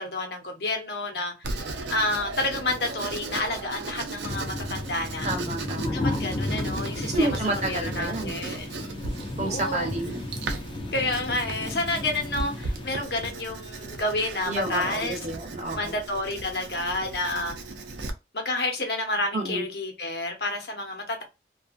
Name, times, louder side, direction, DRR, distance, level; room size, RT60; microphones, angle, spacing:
voice 1, 0.0-1.5 1.9-5.3 5.9-7.3 7.7-8.7 9.4-9.9 10.9-15.2 15.7-17.6 18.3-21.2, left 2 dB, 70° left, 0.9 m, -29 dB
Writing, 1.4-18.1, right 3 dB, 85° right, 0.6 m, -37 dB
sound 1, 4.2-13.0, left 2 dB, 30° left, 0.4 m, -33 dB
voice 2, 5.2-6.2 7.1-8.3 9.4-10.2 14.4-16.0 19.3-19.7, right 2 dB, 40° right, 0.7 m, -30 dB
2.6 x 2.4 x 2.4 m
head